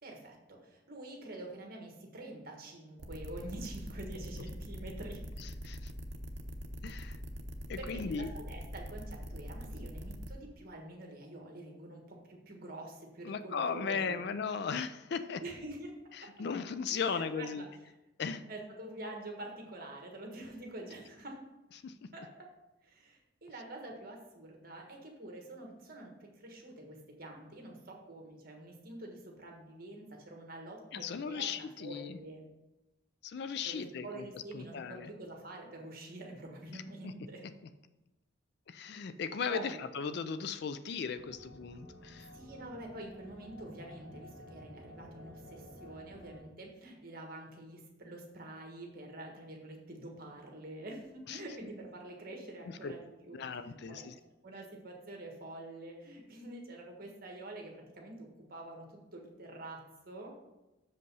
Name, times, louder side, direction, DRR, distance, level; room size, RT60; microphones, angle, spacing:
voice 1, 0.0-5.2 7.8-14.2 15.4-16.0 16.2-16.3 16.9-17.7 18.5-21.4 22.1-22.5 22.8-32.4 33.6-37.4 39.5-39.8 42.3-54.1 54.4-60.4, right 1 dB, 45° right, 1 dB, 1.4 m, -47 dB
sound 1, 3.0-10.3, equal, 60° right, 0.8 m, -43 dB
voice 2, 5.4-5.9 6.8-7.2 7.7-8.3 13.2-15.4 16.2-17.6 18.2-18.4 21.8-22.1 30.9-32.2 33.2-34.3 34.5-35.1 36.7-37.1 38.7-42.3 51.3-51.4 52.8-52.9 53.3-54.1, left 6 dB, 55° left, 11 dB, 0.4 m, -37 dB
sound 2, 41.2-46.4, equal, 15° right, 2.1 m, -52 dB
6.7 x 5.3 x 5.4 m, 1.0 s
head